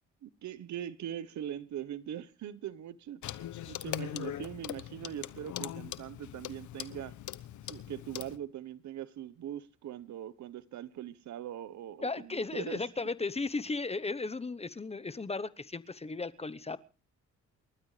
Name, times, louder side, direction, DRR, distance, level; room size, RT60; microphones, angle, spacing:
voice 1, 0.2-3.2 3.6-7.1 7.7-12.8, right 10 dB, 70° right, 1.1 m, -41 dB
Clock, 3.2-8.4, left 12 dB, 75° left, 1.0 m, -41 dB
voice 2, 12.0-16.8, left 3 dB, 20° left, 1.0 m, -35 dB
29.0 x 12.5 x 3.3 m
cardioid pair, 90°, 30 cm